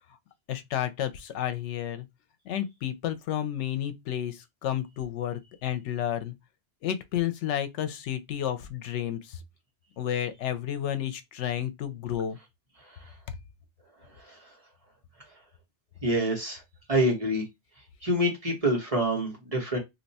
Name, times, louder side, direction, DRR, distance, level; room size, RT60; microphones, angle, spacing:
voice 1, 0.5-2.0 2.5-6.3 6.8-9.4 10.0-12.4 13.3-13.4, left 10 dB, 85° left, 0.9 m, -31 dB
voice 2, 16.0-16.6 16.9-17.4 18.0-19.8, right 1 dB, 30° right, 1.1 m, -26 dB
2.7 x 2.2 x 4.0 m
omnidirectional pair, 1.2 m